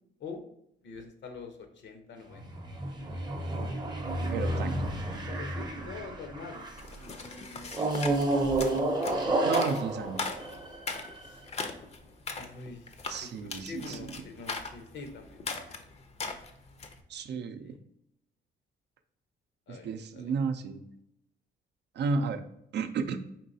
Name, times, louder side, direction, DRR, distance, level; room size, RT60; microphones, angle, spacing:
voice 1, 0.8-2.5 5.3-8.0 11.2-11.4 12.4-15.8 17.6-17.8 19.7-20.3, left 4 dB, 65° left, 6 dB, 0.8 m, -45 dB
sound 1, 2.3-6.9 7.7-11.3, right 2 dB, 20° right, 0.7 m, -31 dB
voice 2, 4.3-4.7 9.4-10.3 13.0-14.1 17.1-17.8 19.7-20.8 22.0-22.4 22.7-23.2, right 5 dB, 60° right, 9 dB, 0.5 m, -33 dB
sound 2, 6.8-17.0, left 3 dB, 30° left, 0.5 m, -39 dB
4.5 x 3.1 x 2.7 m, 0.76 s
cardioid pair, 90°, 20 cm